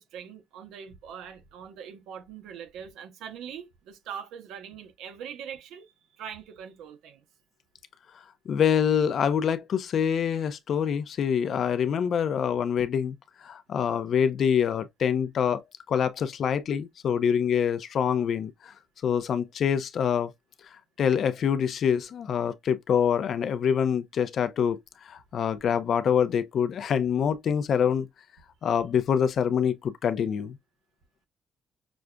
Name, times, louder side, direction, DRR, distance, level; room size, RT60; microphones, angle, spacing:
voice 1, 0.0-7.2, right 8 dB, 90° right, 0.8 m, -42 dB
voice 2, 8.5-13.1 13.4-18.7 19.0-20.3 21.0-28.1 28.6-30.6, left 8 dB, 60° left, 0.5 m, -25 dB
6.0 x 2.4 x 2.2 m
cardioid pair, 90°, 0 cm